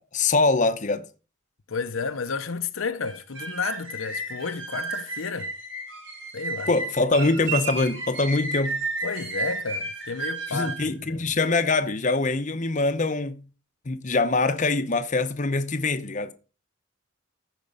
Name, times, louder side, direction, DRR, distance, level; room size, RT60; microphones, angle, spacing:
voice 1, 0.1-1.0 6.7-8.8 10.5-13.4 13.9-16.3, left 3 dB, 40° left, 0.8 m, -23 dB
voice 2, 1.7-5.5 6.3-6.7 9.0-10.8 11.0-11.3, left 5 dB, 80° left, 0.8 m, -31 dB
sound 1, 3.1-10.9, right 3 dB, 60° right, 5.6 m, -33 dB
14.0 x 5.2 x 5.3 m
head